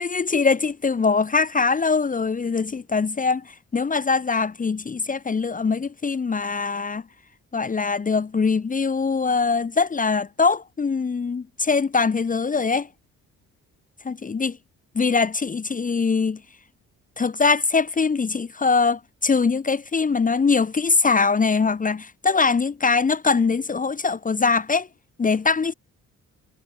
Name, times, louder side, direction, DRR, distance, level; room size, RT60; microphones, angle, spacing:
voice 1, 0.0-7.0 7.5-12.9 14.0-14.5 15.0-16.4 17.2-24.9 25.2-25.7, left 4 dB, 25° left, 1.1 m, -22 dB
cardioid pair, 90°, 30 cm